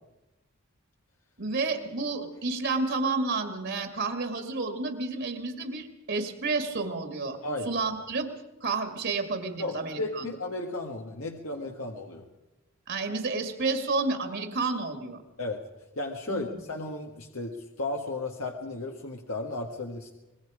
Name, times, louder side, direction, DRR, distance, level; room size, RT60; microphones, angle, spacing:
voice 1, 1.4-7.4 7.7-8.3 8.6-10.3 12.9-15.2 16.3-16.4, right 3 dB, 60° right, 6 dB, 2.2 m, -30 dB
voice 2, 9.6-12.3 15.4-15.6 16.0-20.1, left 2 dB, 80° left, 2 dB, 1.7 m, -34 dB
26.0 x 20.5 x 5.0 m, 1.0 s
head